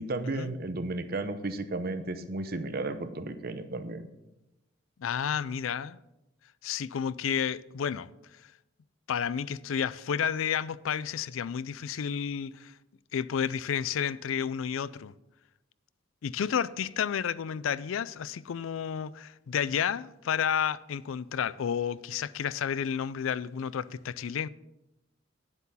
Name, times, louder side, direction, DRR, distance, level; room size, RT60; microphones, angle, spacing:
voice 1, 0.0-4.0, right 2 dB, 50° right, 0.8 m, -33 dB
voice 2, 5.0-6.0 6.6-8.1 9.1-12.7 13.1-15.1 16.2-24.5, left 8 dB, 90° left, 0.4 m, -31 dB
9.6 x 8.1 x 5.5 m
head